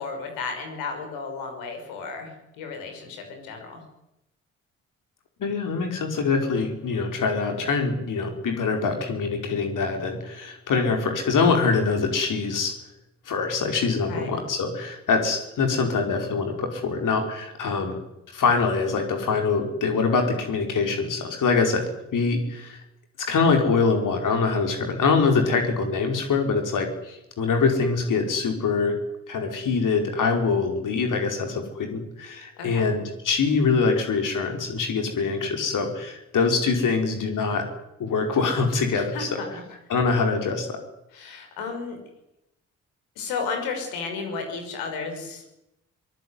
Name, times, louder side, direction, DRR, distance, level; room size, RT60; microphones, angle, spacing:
voice 1, 0.0-3.8 14.1-14.3 32.6-32.9 38.9-39.6 41.1-42.0 43.2-45.4, left 4 dB, 85° left, 5 dB, 5.8 m, -33 dB
voice 2, 5.4-12.7 13.2-17.9 18.3-21.8 22.1-22.8 23.3-29.0 29.3-37.7 38.0-39.3 39.9-40.8, left 4 dB, 65° left, 4 dB, 5.1 m, -24 dB
22.5 x 20.0 x 9.8 m, 0.88 s
hypercardioid pair, 45°, 34 cm